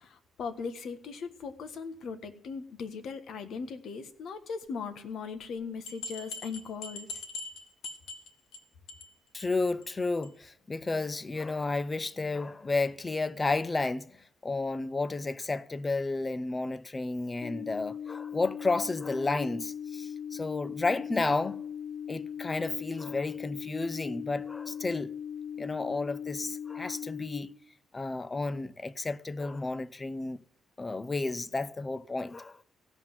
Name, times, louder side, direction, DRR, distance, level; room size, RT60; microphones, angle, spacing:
voice 1, 0.0-7.2, left 5 dB, 65° left, 1.4 m, -39 dB
sound 1, 5.9-8.6 8.9-9.1 9.4-9.5 9.8-9.9 10.2-10.3, left 3 dB, 85° left, 1.5 m, -41 dB
voice 2, 9.3-21.6 22.1-25.1 25.6-27.5 27.9-30.4 30.8-32.6, left 3 dB, 25° left, 0.6 m, -32 dB
sound 2, 17.4-27.4, left 8 dB, 50° left, 1.8 m, -39 dB
16.0 x 5.8 x 9.8 m
cardioid pair, 90°, 0 cm